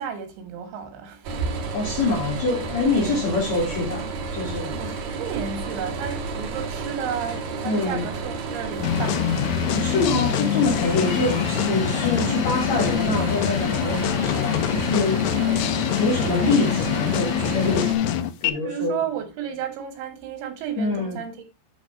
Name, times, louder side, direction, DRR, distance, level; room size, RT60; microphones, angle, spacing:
voice 1, 0.0-1.5 3.0-3.3 4.8-9.3 15.4-15.7 18.5-21.4, right 7 dB, 90° right, 3.9 m, -32 dB
sound 1, 1.2-18.0, right 4 dB, 75° right, 1.6 m, -31 dB
voice 2, 1.7-4.8 7.6-8.1 9.7-15.3 16.0-18.0 18.4-19.0 20.8-21.2, left 3 dB, 65° left, 1.8 m, -25 dB
sound 2, 8.8-18.5, left 11 dB, 80° left, 2.7 m, -24 dB
Bowed string instrument, 11.0-17.3, left 4 dB, 45° left, 2.4 m, -43 dB
8.8 x 3.6 x 4.6 m
omnidirectional pair, 5.1 m